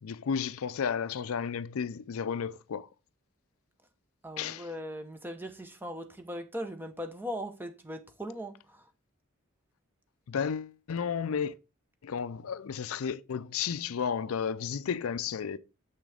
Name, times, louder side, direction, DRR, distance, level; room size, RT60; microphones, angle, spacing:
voice 1, 0.0-2.9 4.4-4.7 10.3-11.5 12.0-15.6, left 7 dB, 80° left, 0.4 m, -33 dB
voice 2, 4.2-8.9, equal, 10° right, 0.8 m, -39 dB
7.3 x 6.1 x 3.4 m
head